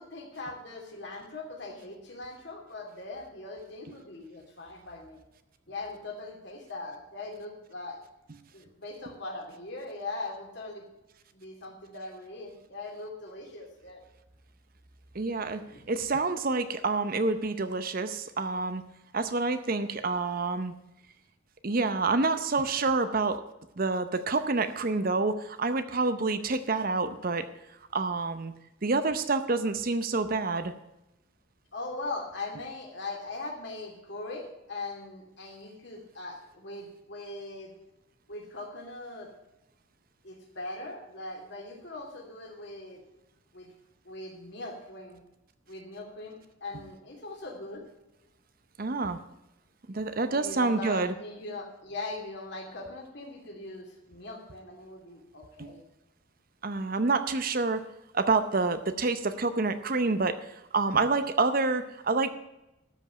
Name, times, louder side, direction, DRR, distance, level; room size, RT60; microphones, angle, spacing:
voice 1, 0.0-5.2 5.7-8.0 8.5-10.9 11.3-14.0 15.6-15.8 31.7-37.7 38.3-39.3 40.2-43.0 43.5-43.7 44.0-45.2 45.7-47.8 50.3-55.8, left 2 dB, 55° left, 1 dB, 2.8 m, -40 dB
voice 2, 15.1-18.8 19.1-20.7 21.6-23.4 23.8-27.5 27.9-28.5 28.8-30.7 48.8-49.2 49.9-51.1 55.6-55.7 56.6-57.8 58.1-62.3, right 3 dB, 45° right, 11 dB, 0.7 m, -28 dB
13.0 x 5.3 x 8.7 m, 0.92 s
head